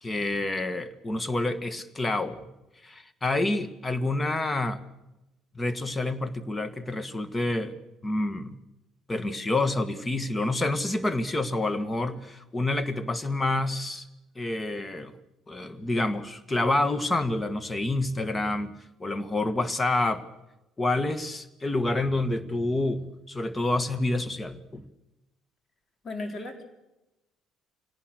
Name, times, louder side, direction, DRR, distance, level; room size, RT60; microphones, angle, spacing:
voice 1, 0.0-2.4 2.8-4.8 5.6-7.8 8.0-8.6 9.1-14.1 14.4-15.2 15.5-18.7 19.0-20.2 20.8-24.9, left 2 dB, 20° left, 14 dB, 1.8 m, -28 dB
voice 2, 26.0-26.6, left 2 dB, 40° left, 5 dB, 4.2 m, -35 dB
25.0 x 18.0 x 6.7 m, 0.97 s
hypercardioid pair, 55°, 0 cm